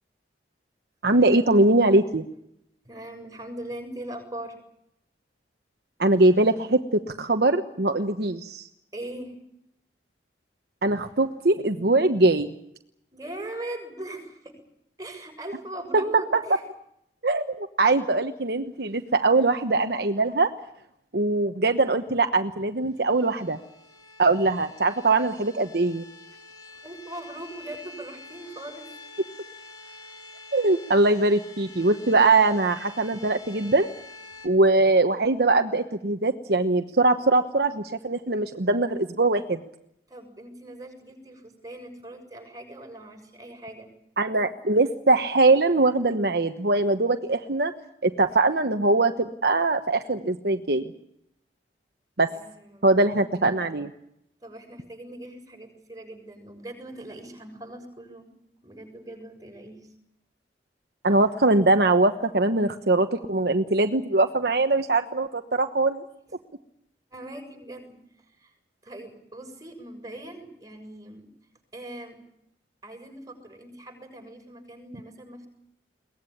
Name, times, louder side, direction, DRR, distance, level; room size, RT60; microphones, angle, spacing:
voice 1, 1.0-2.2 6.0-8.7 10.8-12.5 17.2-20.5 21.1-23.6 24.2-26.0 30.5-33.9 34.4-39.6 44.2-47.7 48.0-50.9 52.2-52.3 52.8-53.9 61.0-66.0, right 2 dB, 60° right, 7 dB, 1.2 m, -22 dB
voice 2, 2.8-4.6 8.9-9.4 13.1-14.5 15.0-16.6 26.8-28.9 40.1-43.9 52.3-53.1 54.4-58.3 58.6-59.9 67.1-68.5 68.8-71.3 71.7-72.2 72.8-75.5, right 1 dB, 20° right, 4 dB, 6.9 m, -40 dB
sound 1, 22.9-34.5, left 3 dB, 25° left, 3.6 m, -47 dB
22.5 x 18.5 x 10.0 m, 0.78 s
head